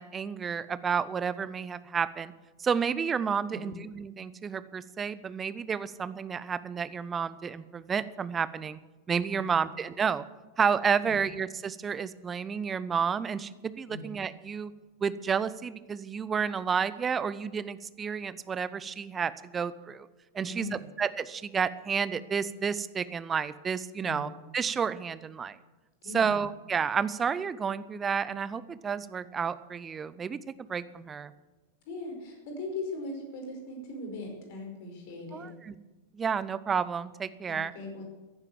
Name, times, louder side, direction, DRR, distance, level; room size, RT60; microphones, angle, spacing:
voice 1, 0.0-2.3 2.6-8.8 9.1-10.2 10.6-14.7 15.0-20.1 20.3-25.6 26.1-30.4 30.7-31.3 35.3-35.7 36.1-37.7, right 6 dB, 20° right, 16 dB, 0.7 m, -31 dB
voice 2, 9.3-9.7 11.0-11.2 13.9-14.1 20.4-20.9 24.0-24.3 26.0-26.4 31.8-35.5 37.5-38.0, left 2 dB, 50° left, 2 dB, 5.1 m, -40 dB
15.0 x 11.0 x 7.2 m, 1.2 s
figure-of-eight pair, 90°, 0 cm